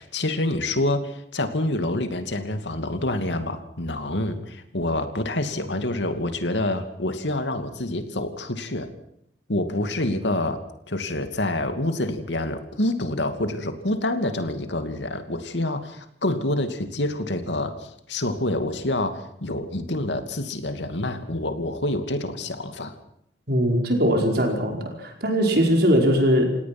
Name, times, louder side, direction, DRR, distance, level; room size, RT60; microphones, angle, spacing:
voice 1, 0.0-8.9 9.5-22.9, left 1 dB, 85° left, 8 dB, 2.6 m, -27 dB
voice 2, 23.5-26.5, equal, 60° right, 2 dB, 5.0 m, -20 dB
29.0 x 18.0 x 6.1 m, 0.73 s
head